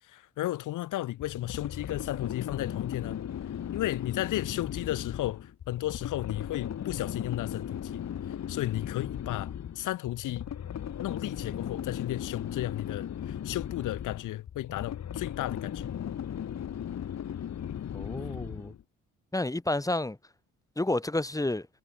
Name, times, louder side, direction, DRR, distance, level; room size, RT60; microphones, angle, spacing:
voice 1, 0.1-3.2 3.7-8.0 8.5-10.5 11.0-15.9, left 15 dB, 85° left, 4.7 m, -34 dB
sound 1, 1.2-18.8, left 9 dB, 60° left, 4.7 m, -37 dB
voice 2, 17.9-18.7 19.3-20.2 20.8-21.7, left 2 dB, 10° left, 2.8 m, -30 dB
cardioid pair, 90°, 30 cm